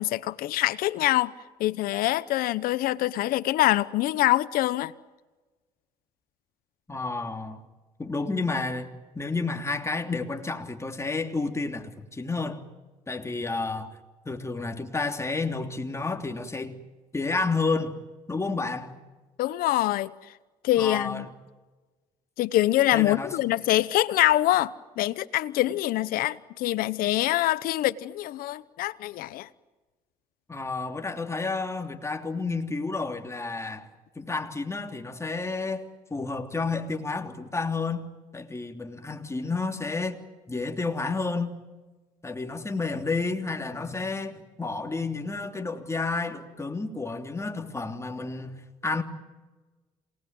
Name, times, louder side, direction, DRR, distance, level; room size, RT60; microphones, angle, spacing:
voice 1, 0.0-1.3 1.6-4.9 19.4-20.1 20.6-21.3 22.4-29.5, left 15 dB, 80° left, 0.9 m, -25 dB
voice 2, 6.9-7.6 8.0-12.6 13.1-13.9 14.2-16.7 17.1-18.0 18.3-18.9 20.8-21.2 22.9-23.3 30.5-33.9 34.1-35.8 36.1-38.1 38.3-40.2 40.5-41.6 42.2-49.0, left 3 dB, 20° left, 3.2 m, -30 dB
28.0 x 19.5 x 9.5 m
supercardioid pair, 75°, 15 cm